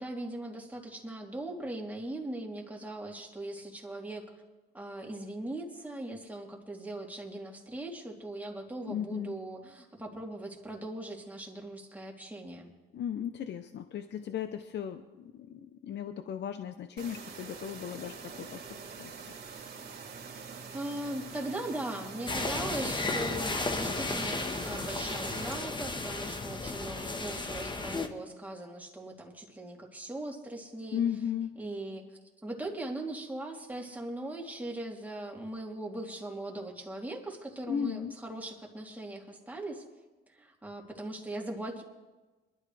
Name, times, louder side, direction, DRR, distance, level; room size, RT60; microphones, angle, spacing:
voice 1, 0.0-4.3 4.7-12.7 20.1-20.4 20.7-31.0 31.6-32.1 32.4-39.8 40.3-41.8, right 1 dB, 10° right, -1 dB, 3.1 m, -40 dB
voice 2, 8.9-9.4 12.9-19.2 30.9-31.6 37.7-38.2, left 9 dB, 60° left, 9 dB, 0.8 m, -36 dB
sound 1, 17.0-25.6, right 5 dB, 60° right, 3.0 m, -45 dB
sound 2, 22.3-28.1, left 3 dB, 25° left, 1.3 m, -34 dB
23.5 x 12.5 x 3.4 m, 1.2 s
cardioid pair, 90°, 20 cm